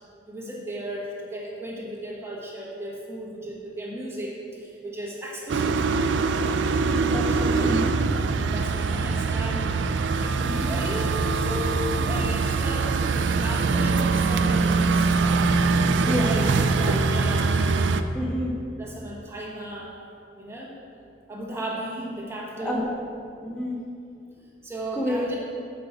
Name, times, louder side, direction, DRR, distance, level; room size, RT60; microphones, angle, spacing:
voice 1, 0.3-5.9 6.3-6.6 7.3-7.7 8.4-9.8 10.2-15.5 16.0-17.6 18.8-19.9 20.4-20.7 21.3-22.9 24.6-25.4, right 1 dB, 15° right, -4 dB, 1.2 m, -35 dB
sound 1, 5.5-18.0, right 4 dB, 75° right, 0.4 m, -23 dB
voice 2, 6.8-7.8 16.0-16.3 18.1-18.5 22.6-22.9 23.4-23.8 24.9-25.3, left 1 dB, 5° left, -4 dB, 1.3 m, -29 dB
8.7 x 5.2 x 5.9 m, 2.6 s
head